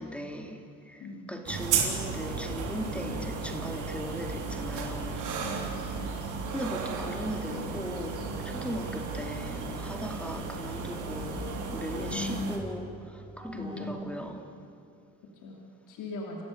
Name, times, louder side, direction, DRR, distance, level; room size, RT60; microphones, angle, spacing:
voice 1, 0.0-5.2 6.5-14.5, equal, 5° left, 4 dB, 2.7 m, -38 dB
voice 2, 1.0-1.5 5.4-6.1 12.1-12.6 13.5-14.1 15.4-16.4, left 2 dB, 85° left, -1 dB, 3.2 m, -39 dB
sound 1, 1.5-12.6, right 5 dB, 85° right, 3.5 m, -34 dB
sound 2, 10.8-12.1 13.0-14.0, right 1 dB, 15° right, 6.3 m, -46 dB
28.0 x 14.5 x 10.0 m, 2.5 s
cardioid pair, 90°, 30 cm